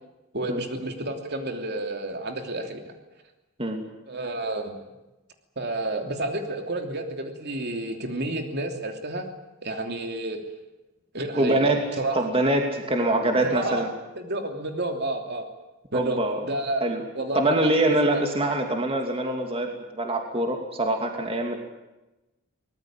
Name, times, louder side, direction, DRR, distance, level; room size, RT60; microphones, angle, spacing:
voice 1, 0.3-2.9 4.1-4.8 5.6-9.3 9.6-10.4 11.1-11.6 12.0-12.2 13.4-13.8 14.2-15.5 15.9-16.9 17.1-17.7 18.1-18.2, right 2 dB, 50° right, 4 dB, 3.0 m, -30 dB
voice 2, 11.3-11.8 12.1-13.9 15.9-16.4 16.8-17.0 17.3-21.6, right 1 dB, 25° right, 3 dB, 2.6 m, -24 dB
23.5 x 20.0 x 9.0 m, 1.0 s
head